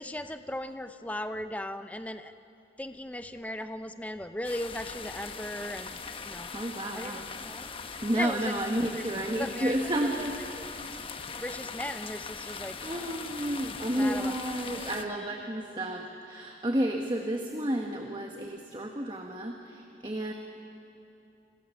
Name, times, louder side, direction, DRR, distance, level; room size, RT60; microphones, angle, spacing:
voice 1, 0.0-2.3 2.8-6.0 6.3-6.5 6.9-7.7 8.1-8.5 8.9-9.0 9.4-9.8 10.0-10.1 11.4-13.1 14.0-14.4 14.7-14.9, left 1 dB, 10° left, 9 dB, 0.6 m, -37 dB
sound 1, 4.4-15.0, left 5 dB, 30° left, 1.0 m, -41 dB
voice 2, 6.5-7.3 8.0-10.3 12.8-20.3, right 1 dB, 25° right, 2 dB, 1.4 m, -31 dB
29.5 x 26.0 x 7.1 m, 2.8 s
head